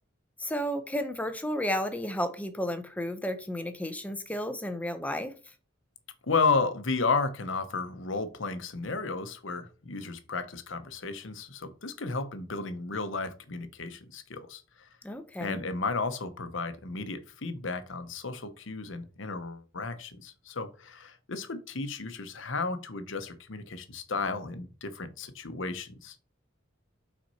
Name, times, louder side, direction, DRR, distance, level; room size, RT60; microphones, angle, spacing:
voice 1, 0.4-5.3 15.0-15.6, equal, 5° left, 0.7 m, -32 dB
voice 2, 6.3-14.6 15.4-26.2, left 4 dB, 75° left, 0.9 m, -33 dB
6.1 x 4.3 x 4.2 m
head